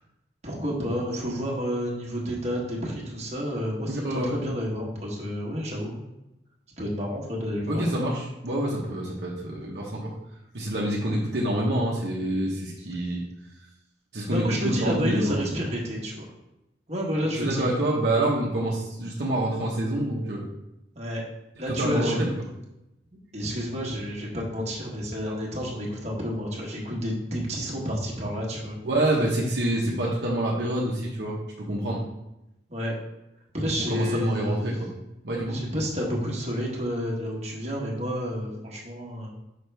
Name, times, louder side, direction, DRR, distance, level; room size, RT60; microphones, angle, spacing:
voice 1, 0.4-6.0 6.8-7.8 14.3-16.2 16.9-17.6 20.9-21.2 21.6-22.2 23.3-28.8 32.7-32.9 33.5-34.9 35.5-39.3, equal, 35° right, -3 dB, 1.4 m, -30 dB
voice 2, 3.9-4.3 7.7-10.1 10.5-13.2 14.1-15.4 17.4-20.5 21.8-22.3 28.8-31.4 31.7-32.0 33.9-34.9 35.2-35.6, right 1 dB, 60° right, -4 dB, 1.0 m, -27 dB
6.1 x 5.1 x 3.4 m, 0.89 s
head